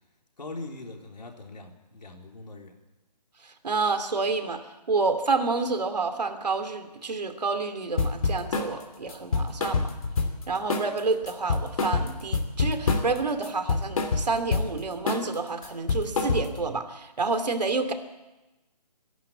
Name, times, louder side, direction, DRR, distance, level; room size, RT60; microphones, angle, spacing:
voice 1, 0.4-2.7, left 2 dB, 80° left, 2 dB, 4.0 m, -41 dB
voice 2, 3.6-4.6 4.9-9.9 10.5-17.9, right 4 dB, 75° right, 8 dB, 2.8 m, -29 dB
sound 1, 8.0-8.7 9.1-10.4 10.7-11.0 11.3-13.2 13.4-14.7 15.1-15.3 15.6-16.7, left 4 dB, 55° left, 2.9 m, -26 dB
26.5 x 11.5 x 8.6 m, 1.0 s
figure-of-eight pair, 150°, 21 cm